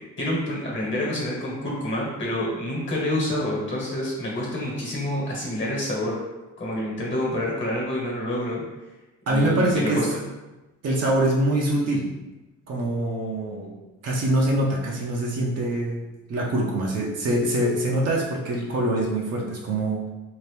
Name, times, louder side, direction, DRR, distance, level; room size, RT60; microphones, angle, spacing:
voice 1, 0.2-6.2 6.6-8.6 9.3-10.2, left 1 dB, 40° left, -3 dB, 1.3 m, -27 dB
voice 2, 9.3-10.0 10.8-12.1 12.7-13.7 14.0-20.0, right 1 dB, 55° right, -3 dB, 0.7 m, -24 dB
2.8 x 2.5 x 3.4 m, 1.1 s
cardioid pair, 90°, 30 cm